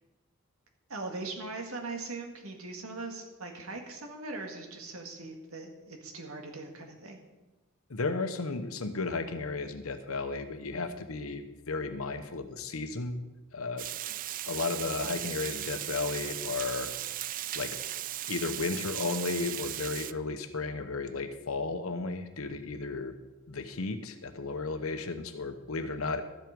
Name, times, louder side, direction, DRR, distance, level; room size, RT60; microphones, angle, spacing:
voice 1, 0.9-7.2 24.5-24.7, right 3 dB, 85° right, 3 dB, 2.0 m, -40 dB
voice 2, 7.9-13.2 13.5-13.9 14.5-16.9 17.5-17.8 18.3-23.1 23.5-26.2, left 3 dB, 80° left, 9 dB, 1.0 m, -34 dB
Water, 13.8-20.1, right 13 dB, 40° right, 0.3 m, -37 dB
12.5 x 7.7 x 5.2 m, 1.1 s
head